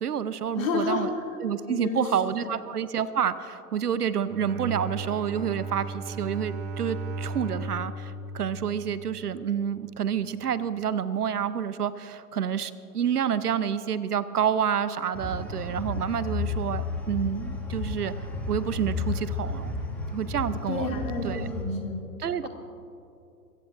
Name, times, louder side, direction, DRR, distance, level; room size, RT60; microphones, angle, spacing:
voice 1, 0.0-1.1 1.4-18.1 18.5-19.7 20.1-21.0 21.2-21.5 22.2-22.5, right 8 dB, 70° right, 15 dB, 0.8 m, -28 dB
voice 2, 0.6-1.1 1.7-2.1 2.4-2.6 20.7-22.0 22.4-22.5, left 4 dB, 55° left, 1 dB, 2.7 m, -30 dB
Bowed string instrument, 4.2-9.5, right 3 dB, 35° right, 1.9 m, -36 dB
sound 1, 15.1-21.6, left 3 dB, 5° left, 1.1 m, -32 dB
23.0 x 16.0 x 2.6 m, 2.7 s
figure-of-eight pair, 125°, 48 cm